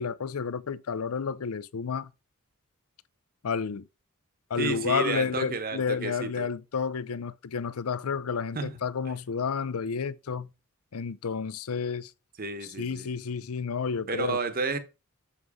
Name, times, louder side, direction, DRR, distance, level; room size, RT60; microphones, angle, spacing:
voice 1, 0.0-2.1 3.4-3.9 4.5-10.5 10.9-12.1 12.6-14.4, left 6 dB, 75° left, 0.5 m, -31 dB
voice 2, 4.6-6.5 8.5-8.7 12.4-13.1 14.1-14.8, right 4 dB, 45° right, 1.0 m, -31 dB
7.3 x 6.2 x 4.8 m
head